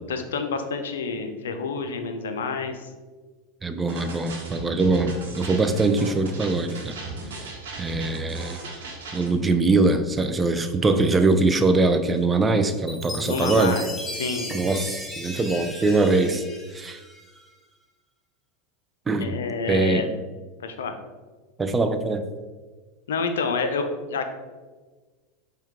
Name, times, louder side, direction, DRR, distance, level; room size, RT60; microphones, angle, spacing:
voice 1, 0.1-2.9 13.2-13.9 14.1-14.6 19.2-20.1 20.6-21.0 23.1-24.3, left 4 dB, 75° left, 7 dB, 0.4 m, -28 dB
voice 2, 3.6-7.0 7.4-8.6 9.1-13.8 14.5-16.5 16.7-17.0 19.1-19.4 19.7-20.1 21.6-22.2, right 3 dB, 15° right, 8 dB, 0.3 m, -22 dB
sound 1, 3.9-9.3, right 2 dB, 75° right, 1.0 m, -38 dB
Chime, 12.9-17.5, left 1 dB, 5° left, 0.7 m, -37 dB
4.4 x 2.3 x 3.5 m, 1.3 s
hypercardioid pair, 90°, 0 cm